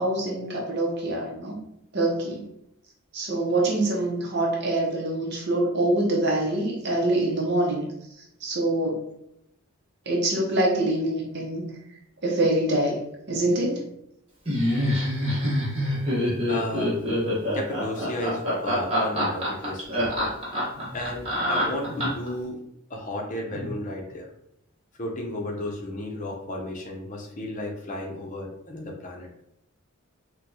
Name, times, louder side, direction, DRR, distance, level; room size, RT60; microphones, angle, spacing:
voice 1, 0.0-1.6 1.9-2.4 3.1-7.9 8.2-9.0 10.1-11.6 12.2-13.9 20.8-20.9 21.9-22.0 23.5-23.7, right 1 dB, 50° right, -2 dB, 0.7 m, -25 dB
Laughter, 14.5-22.3, equal, 25° right, 1.1 m, -25 dB
voice 2, 16.5-17.0 17.5-20.4 20.9-22.6 22.9-24.3 24.9-29.3, left 1 dB, 35° left, 0 dB, 0.6 m, -33 dB
4.3 x 2.2 x 2.7 m, 0.78 s
head